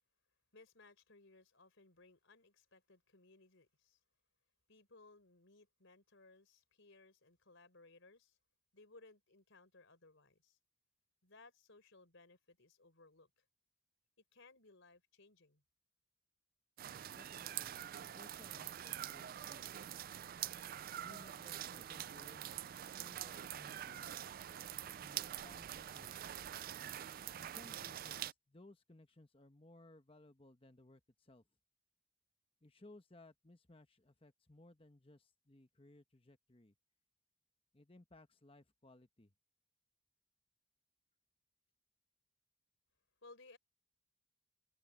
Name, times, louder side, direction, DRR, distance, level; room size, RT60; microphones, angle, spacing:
voice 1, 0.5-4.0 4.7-8.4 8.7-10.6 11.2-13.4 14.3-15.6 43.2-43.6, left 3 dB, 60° left, 4.2 m, -63 dB
sound 1, 16.8-28.3, right 11 dB, 40° right, 0.3 m, -45 dB
voice 2, 17.1-19.9 21.0-24.2 25.0-26.5 27.4-31.5 32.6-36.8 37.7-39.3, left 1 dB, 25° left, 1.1 m, -62 dB
head